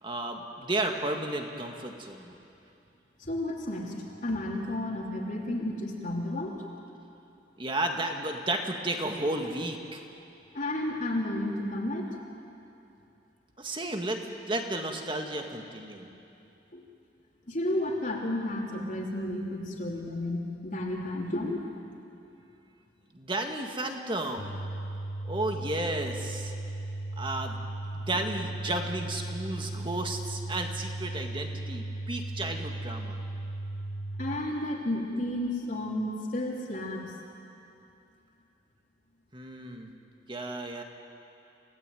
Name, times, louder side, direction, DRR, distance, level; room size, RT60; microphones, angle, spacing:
voice 1, 0.0-2.3 7.6-10.0 13.6-16.1 23.1-24.6 25.2-26.5 27.2-27.7 27.9-33.2 39.3-39.9 40.3-40.8, right 2 dB, 25° right, 3 dB, 1.9 m, -33 dB
voice 2, 3.2-3.9 4.2-6.6 10.5-12.1 16.7-16.8 17.5-21.8 34.2-37.1, left 1 dB, 45° left, -3 dB, 3.2 m, -32 dB
sound 1, 24.4-34.4, right 1 dB, 70° left, 2.6 m, -36 dB
28.0 x 17.0 x 9.3 m, 2.8 s
head